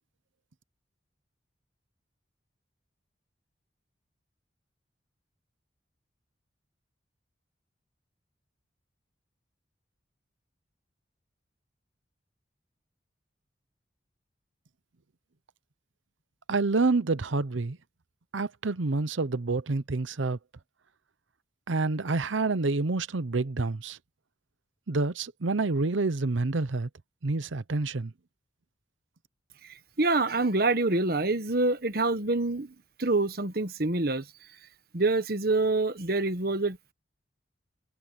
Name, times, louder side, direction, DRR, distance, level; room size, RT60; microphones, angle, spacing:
voice 1, 16.5-17.8 18.3-20.4 21.7-24.0 24.9-26.9 27.2-28.1, right 3 dB, 85° right, 0.8 m, -28 dB
voice 2, 30.0-32.7 33.0-34.2 34.9-36.9, right 2 dB, 50° right, 1.3 m, -26 dB
head